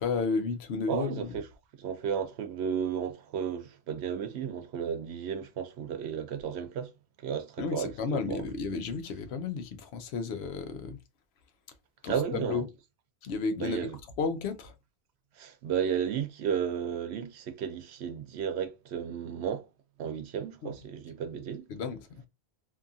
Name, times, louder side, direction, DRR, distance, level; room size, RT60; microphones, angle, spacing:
voice 1, 0.0-1.3 7.6-11.0 12.0-12.6 13.2-13.9 14.2-14.7 20.6-20.7 21.7-22.0, left 4 dB, 80° left, 0.8 m, -32 dB
voice 2, 0.9-1.5 1.8-6.9 7.2-8.4 12.1-12.6 13.6-14.0 15.4-19.7 20.0-21.7, right 7 dB, 90° right, 0.9 m, -33 dB
2.8 x 2.3 x 2.6 m
omnidirectional pair, 1.1 m